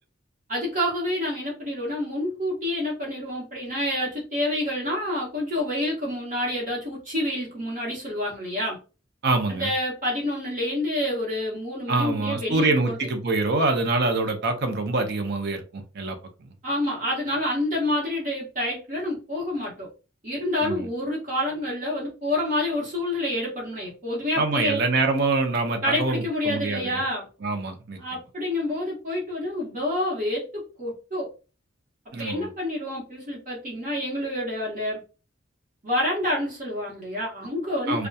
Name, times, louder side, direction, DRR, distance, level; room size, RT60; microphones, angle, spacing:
voice 1, 0.5-8.8 9.5-13.1 16.6-19.9 20.2-24.8 25.8-27.3 28.0-31.3 32.2-35.0 35.8-38.1, left 1 dB, 45° right, -4 dB, 1.1 m, -28 dB
voice 2, 9.2-9.7 11.9-16.2 20.6-20.9 24.4-27.0 27.4-28.0 32.1-32.5 37.9-38.1, right 3 dB, 60° right, 5 dB, 0.6 m, -25 dB
2.7 x 2.2 x 2.2 m, 0.33 s
head